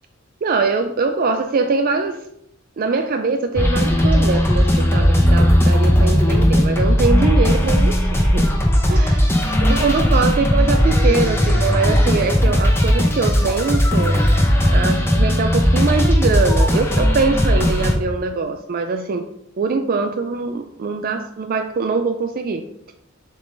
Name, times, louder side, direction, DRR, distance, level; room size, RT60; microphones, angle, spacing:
voice 1, 0.4-2.2 2.8-8.4 8.9-9.3 9.6-14.3 14.7-19.2 19.6-22.6, right 4 dB, 45° right, 7 dB, 0.4 m, -22 dB
sound 1, 3.6-18.0, equal, 10° left, 0.9 m, -16 dB
7.0 x 3.8 x 3.9 m, 0.75 s
head